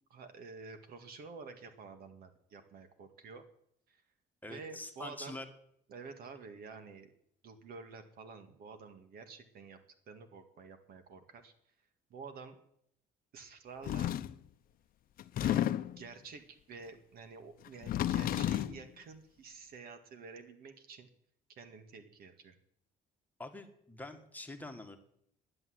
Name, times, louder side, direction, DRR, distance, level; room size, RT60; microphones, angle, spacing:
voice 1, 0.1-3.4 3.9-4.0 4.5-5.4 5.9-7.1 7.4-9.8 10.1-11.5 12.1-12.6 13.3-14.1 15.4-21.1 21.6-22.5, right 4 dB, 65° right, 8 dB, 2.0 m, -50 dB
voice 2, 4.4-5.5 23.4-25.0, left 2 dB, 10° left, 5 dB, 1.8 m, -45 dB
sound 1, 13.9-14.4 15.2-16.0 17.7-18.8, left 12 dB, 60° left, 0.7 m, -32 dB
11.0 x 11.0 x 7.8 m, 0.69 s
cardioid pair, 110°, 17 cm